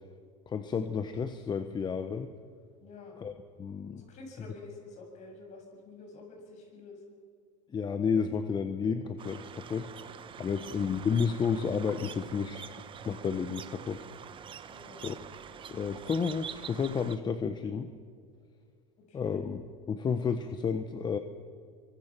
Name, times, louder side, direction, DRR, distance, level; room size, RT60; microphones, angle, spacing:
voice 1, 0.5-2.3 3.2-3.3 3.6-4.0 7.7-9.9 10.4-12.8 13.0-14.0 15.0-15.2 15.7-17.9 19.1-19.6 19.9-21.2, left 6 dB, 25° left, 9 dB, 1.2 m, -31 dB
voice 2, 2.8-3.1 4.0-7.0 10.4-10.7 14.7-15.1 19.1-19.4, left 3 dB, 45° left, 2 dB, 7.3 m, -49 dB
sound 1, 9.2-17.2, right 8 dB, 30° right, 1.1 m, -46 dB
24.0 x 24.0 x 6.1 m, 2.1 s
supercardioid pair, 110°, 16 cm